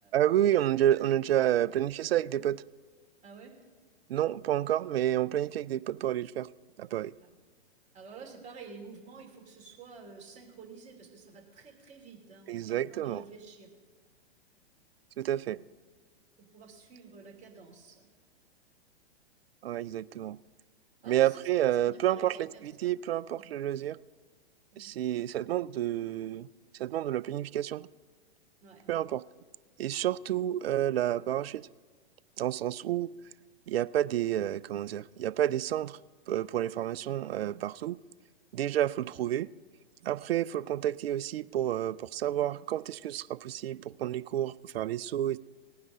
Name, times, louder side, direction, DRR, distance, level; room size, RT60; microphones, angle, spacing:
voice 1, 0.1-2.6 4.1-6.5 6.8-7.1 12.5-13.2 15.2-15.6 19.6-20.4 21.1-22.4 22.6-24.0 24.8-26.5 26.8-27.9 28.9-29.2 29.8-31.7 32.4-33.1 33.7-36.0 36.3-38.0 38.5-39.5 40.0-45.4, right 12 dB, 70° right, 19 dB, 0.5 m, -29 dB
voice 2, 3.2-3.5 7.3-7.4 7.9-13.7 15.5-15.6 16.4-18.1 21.0-21.5 21.8-23.0 23.3-23.5 24.7-24.9 28.6-29.0, right 5 dB, 20° right, -1 dB, 2.9 m, -50 dB
18.5 x 9.6 x 3.8 m, 1.5 s
hypercardioid pair, 115°, 32 cm